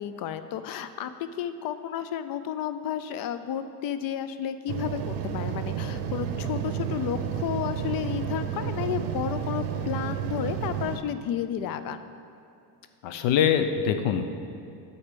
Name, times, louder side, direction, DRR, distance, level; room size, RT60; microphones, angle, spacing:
voice 1, 0.0-12.0, left 9 dB, 50° left, 11 dB, 0.5 m, -32 dB
sound 1, 4.7-11.0, right 8 dB, 70° right, 0.7 m, -31 dB
voice 2, 13.0-14.2, left 8 dB, 80° left, 8 dB, 0.8 m, -23 dB
8.8 x 4.3 x 6.8 m, 2.5 s
cardioid pair, 130°, 44 cm